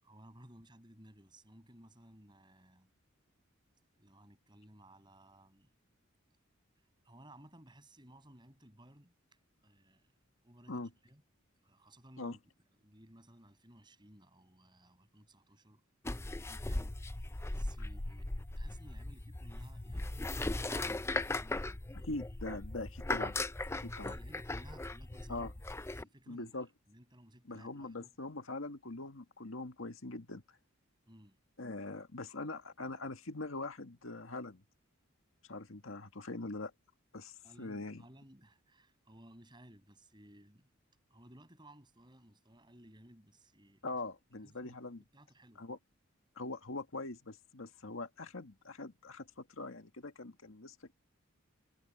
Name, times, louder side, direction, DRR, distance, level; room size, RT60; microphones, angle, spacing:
voice 1, 0.0-2.9 4.0-5.7 6.8-10.1 10.4-11.2 11.6-15.8 16.1-22.2 23.8-25.5 25.9-26.6 26.9-28.2 31.1-31.4 37.4-40.7 41.1-43.9 44.4-45.7, right 1 dB, 20° right, 7.8 m, -59 dB
sound 1, 16.0-26.0, left 2 dB, 15° left, 0.4 m, -38 dB
voice 2, 22.0-23.4 23.7-24.1 25.3-25.5 26.3-26.7 27.5-30.4 31.6-34.6 35.5-36.7 37.1-38.0 43.8-45.0 45.6-45.8 46.4-50.9, left 2 dB, 75° left, 1.8 m, -42 dB
head